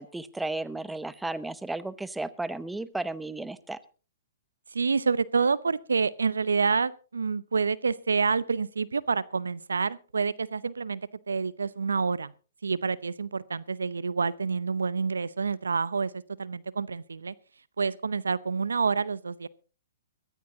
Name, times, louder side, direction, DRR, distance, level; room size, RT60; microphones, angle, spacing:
voice 1, 0.0-3.8, right 2 dB, 5° right, 0.8 m, -34 dB
voice 2, 4.7-12.3 12.6-16.1 16.4-17.3 17.8-19.5, right 5 dB, 80° right, 0.6 m, -28 dB
22.0 x 14.0 x 2.8 m
hypercardioid pair, 125°, 0 cm